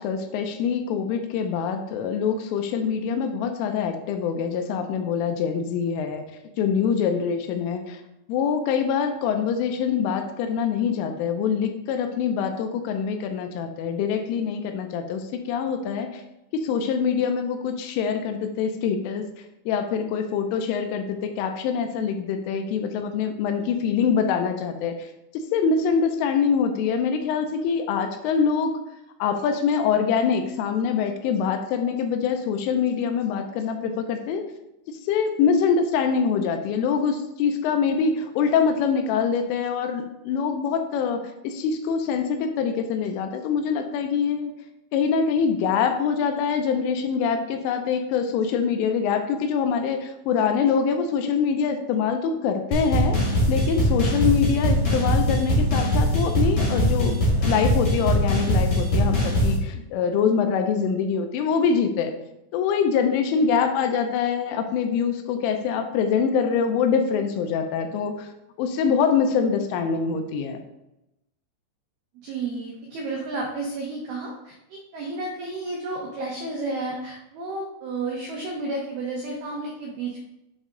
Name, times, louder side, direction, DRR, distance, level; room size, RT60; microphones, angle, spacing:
voice 1, 0.0-6.2 6.6-8.0 8.3-16.2 16.5-19.2 19.7-25.1 25.5-28.7 29.2-34.4 35.1-44.5 44.9-62.1 62.5-68.3 68.6-70.6, left 6 dB, 85° left, 6 dB, 3.2 m, -24 dB
sound 1, 52.7-59.6, equal, 50° left, 1.7 m, -21 dB
voice 2, 72.2-80.3, right 2 dB, 85° right, -1 dB, 2.2 m, -32 dB
8.3 x 3.6 x 3.8 m, 0.91 s
omnidirectional pair, 5.7 m